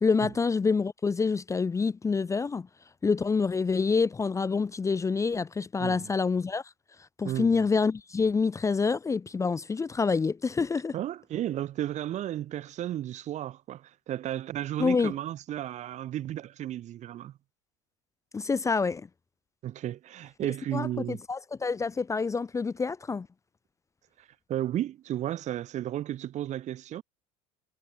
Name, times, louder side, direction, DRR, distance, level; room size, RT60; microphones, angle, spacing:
voice 1, 0.0-2.7 3.0-6.6 7.2-10.9 14.8-15.1 18.3-19.1 20.7-23.3, left 4 dB, 20° left, 0.6 m, -27 dB
voice 2, 5.8-6.1 7.2-7.7 10.9-17.3 19.6-21.2 24.2-27.0, right 12 dB, 45° right, 1.0 m, -34 dB
hypercardioid pair, 90°, 17 cm